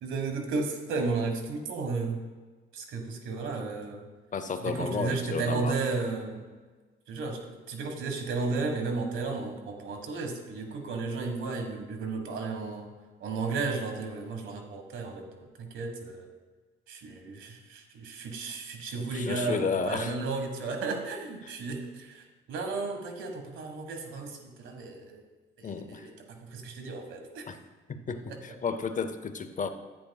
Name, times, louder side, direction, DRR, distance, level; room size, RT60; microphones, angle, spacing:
voice 1, 0.0-2.2 2.7-4.0 4.6-6.4 7.1-7.4 7.7-12.9 13.2-16.3 16.9-22.2 22.5-25.2 25.6-26.1 26.5-27.4 28.3-28.4, right 4 dB, 80° right, 4 dB, 1.4 m, -33 dB
voice 2, 4.3-5.7 18.4-18.5 18.9-20.2 21.4-21.5 25.6-26.1 27.5-27.6 27.9-29.7, left 5 dB, 40° left, 10 dB, 0.6 m, -32 dB
10.0 x 9.5 x 2.3 m, 1.4 s
cardioid pair, 90°, 20 cm